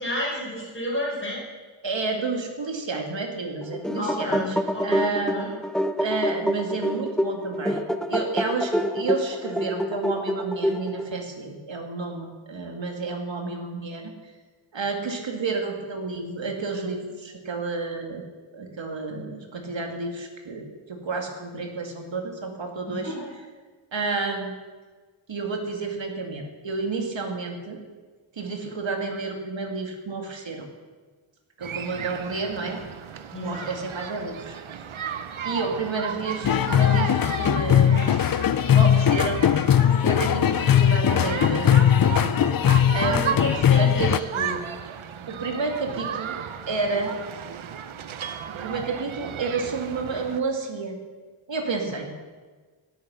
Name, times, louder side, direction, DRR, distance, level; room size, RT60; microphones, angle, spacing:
voice 1, 0.0-1.4 4.0-5.5 22.9-23.3 33.3-33.7 43.1-44.6, left 1 dB, 25° left, -4 dB, 4.6 m, -31 dB
voice 2, 1.8-4.6 4.8-5.6 6.0-7.8 8.1-14.1 14.7-18.2 18.5-23.2 23.9-24.5 25.3-27.8 28.3-30.7 31.6-32.8 33.4-34.9 35.4-38.2 38.7-39.8 40.0-42.4 42.9-43.4 43.7-44.3 45.3-46.4 46.7-47.1 48.5-51.0 51.5-52.3, right 3 dB, 65° right, 3 dB, 2.2 m, -30 dB
sound 1, 3.6-11.2, equal, ahead, 0.7 m, -27 dB
sound 2, 31.6-50.4, right 8 dB, 85° right, 0.8 m, -35 dB
sound 3, 36.4-44.2, left 10 dB, 50° left, 0.5 m, -20 dB
17.5 x 8.6 x 5.6 m, 1.4 s
wide cardioid pair, 90°, 47 cm